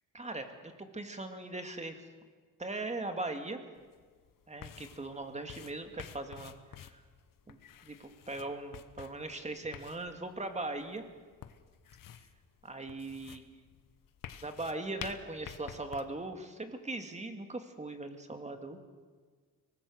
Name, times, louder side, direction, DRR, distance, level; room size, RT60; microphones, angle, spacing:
voice 1, 0.1-2.0 2.6-3.6 4.5-7.0 7.5-11.0 12.6-13.5 14.4-18.8, right 2 dB, 20° right, 6 dB, 2.4 m, -40 dB
sound 1, 3.8-16.0, left 9 dB, 70° left, 1.3 m, -51 dB
23.5 x 19.5 x 6.6 m, 1.5 s
cardioid pair, 95°, 34 cm